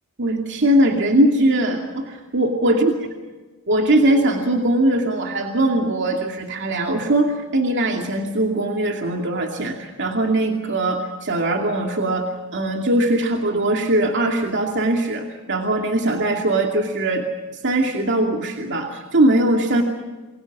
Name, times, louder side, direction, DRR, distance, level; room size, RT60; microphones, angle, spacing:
voice 1, 0.2-2.9 3.7-17.2 17.6-19.8, right 1 dB, 55° right, 2 dB, 2.5 m, -20 dB
28.0 x 22.5 x 6.1 m, 1.3 s
head